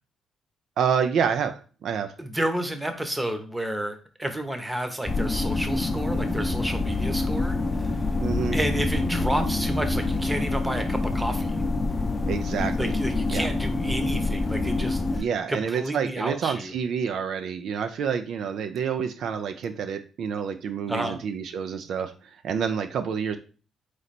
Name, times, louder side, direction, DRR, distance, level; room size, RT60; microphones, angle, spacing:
voice 1, 0.8-2.1 8.2-8.6 12.3-13.0 13.3-13.5 15.2-23.4, right 7 dB, 70° right, 8 dB, 0.4 m, -28 dB
voice 2, 2.2-7.9 8.5-11.6 12.8-16.7 20.9-21.2, right 1 dB, 10° right, 7 dB, 0.8 m, -31 dB
sound 1, 5.1-15.2, left 2 dB, 25° left, 0.7 m, -26 dB
3.9 x 3.2 x 4.1 m, 0.37 s
cardioid pair, 90°, 0 cm